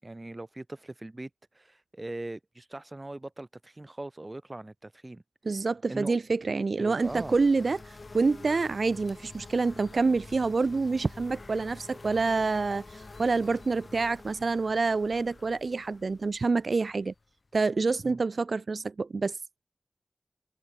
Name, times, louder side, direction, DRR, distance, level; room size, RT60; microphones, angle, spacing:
voice 1, 0.0-5.2 5.9-6.2 6.8-7.4 18.0-18.2, right 2 dB, 30° right, 3.1 m, -40 dB
voice 2, 5.4-17.1 17.5-19.4, right 4 dB, 75° right, 1.0 m, -27 dB
sound 1, 7.0-17.6, left 3 dB, 60° left, 7.6 m, -48 dB
wide cardioid pair, 65°, 0 cm